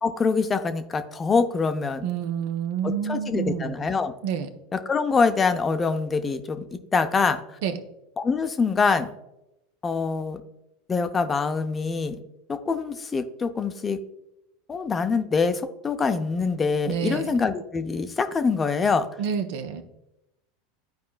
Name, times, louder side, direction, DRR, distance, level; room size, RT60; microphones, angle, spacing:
voice 1, 0.0-2.1 2.8-4.1 4.7-7.4 8.2-9.1 9.8-10.4 10.9-12.2 12.5-14.0 14.7-19.1, left 4 dB, 25° left, 8 dB, 0.6 m, -24 dB
voice 2, 2.0-3.7 4.2-4.5 7.6-7.8 16.9-17.3 19.2-19.8, right 8 dB, 60° right, 7 dB, 0.7 m, -28 dB
12.0 x 4.6 x 2.4 m, 0.89 s
figure-of-eight pair, 80°, 0 cm